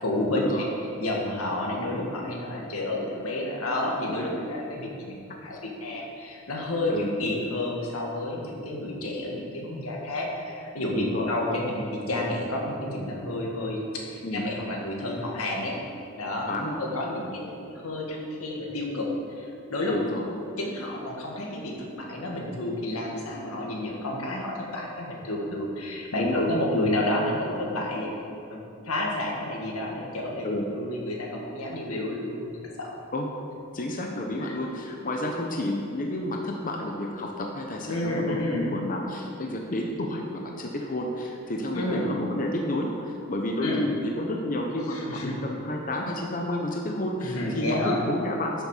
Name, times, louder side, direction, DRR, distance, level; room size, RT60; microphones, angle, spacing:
voice 1, 0.0-0.7 1.0-6.9 7.2-16.5 16.8-19.1 19.4-19.9 20.6-28.1 28.5-28.6 28.8-30.5 30.7-32.5 32.8-32.9 37.9-38.7 41.7-42.1 43.6-43.9 44.9-45.4 47.2-48.0, left 1 dB, 90° left, -1 dB, 1.9 m, -30 dB
voice 2, 16.5-16.8 19.9-20.2 23.3-23.4 26.2-26.4 30.4-30.6 33.1-33.3 33.7-48.6, left 1 dB, 40° left, 0 dB, 0.8 m, -30 dB
12.5 x 6.6 x 5.0 m, 2.6 s
head